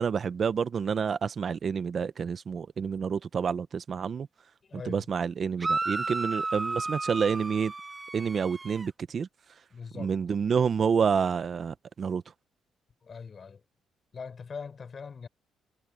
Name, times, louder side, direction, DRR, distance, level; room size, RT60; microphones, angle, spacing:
voice 1, 0.0-4.3 4.9-7.7 8.1-9.3 10.0-12.2, right 6 dB, 50° right, 0.9 m, -28 dB
voice 2, 4.6-5.1 9.7-10.1 13.0-13.6 14.1-15.3, left 5 dB, 40° left, 4.2 m, -41 dB
sound 1, 5.6-8.9, right 3 dB, 20° right, 1.8 m, -32 dB
cardioid pair, 90°, 0 cm